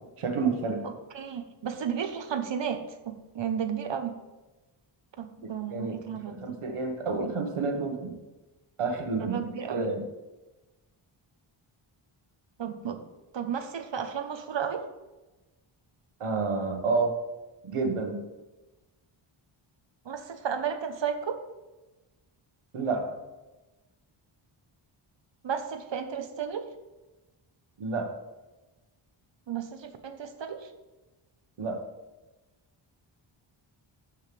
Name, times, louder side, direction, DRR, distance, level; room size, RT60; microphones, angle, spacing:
voice 1, 0.2-0.8 5.7-6.0 6.3-8.1 8.8-9.4 9.7-10.0 16.2-17.1 17.6-18.2 22.7-23.0 27.8-28.1 31.6-31.8, right 4 dB, 85° right, 3 dB, 1.7 m, -29 dB
voice 2, 0.8-4.1 5.2-6.4 9.1-9.9 12.6-13.1 13.3-14.9 20.0-21.4 25.4-26.7 29.5-30.7, right 7 dB, 60° right, 8 dB, 1.1 m, -33 dB
14.0 x 5.6 x 3.5 m, 1.1 s
cardioid pair, 85°, 50 cm